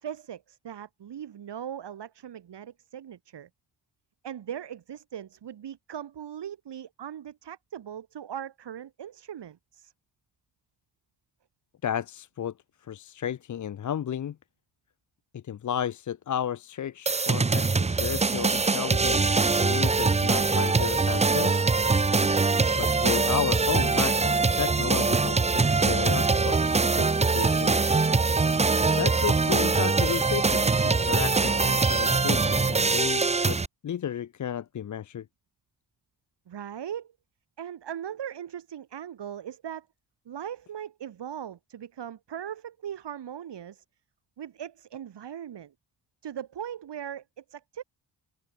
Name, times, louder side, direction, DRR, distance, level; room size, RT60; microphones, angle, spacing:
voice 1, 0.0-3.5 4.2-9.9 36.5-37.1 37.6-39.9 40.3-43.8 44.4-45.7 46.2-47.8, right 9 dB, 85° right, 2.3 m, -39 dB
voice 2, 11.8-12.5 12.8-14.4 15.3-21.7 22.7-27.8 29.0-35.3, left 9 dB, 45° left, 0.6 m, -33 dB
sound 1, 17.1-33.7, right 4 dB, 15° right, 0.5 m, -23 dB
wide cardioid pair, 95°, 40 cm